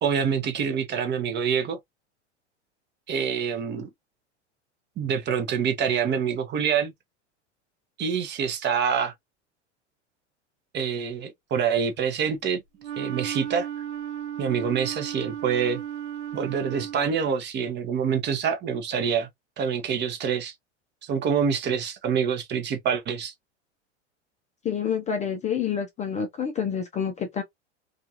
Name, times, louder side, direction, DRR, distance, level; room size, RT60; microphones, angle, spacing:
voice 1, 0.0-1.8 3.1-3.9 5.0-6.9 8.0-9.1 10.7-12.6 13.0-13.7 14.4-15.8 16.3-19.3 19.6-20.5 21.0-23.3, right 7 dB, 30° right, 0.7 m, -26 dB
Wind instrument woodwind instrument, 12.8-17.3, right 10 dB, 75° right, 1.2 m, -35 dB
voice 2, 24.6-27.4, left 7 dB, 20° left, 0.4 m, -28 dB
2.4 x 2.4 x 2.7 m
hypercardioid pair, 90°, 35 cm